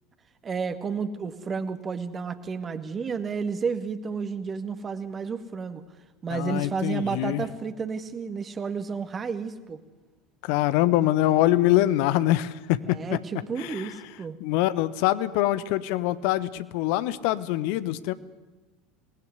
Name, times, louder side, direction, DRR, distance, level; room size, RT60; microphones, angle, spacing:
voice 1, 0.4-5.8 6.2-9.8 12.9-14.4, right 5 dB, 25° right, 9 dB, 1.9 m, -31 dB
voice 2, 6.3-7.4 10.4-13.2 13.6-13.9 14.4-18.1, left 15 dB, 55° left, 16 dB, 1.1 m, -24 dB
26.5 x 19.5 x 9.6 m, 1.2 s
figure-of-eight pair, 75°, 0 cm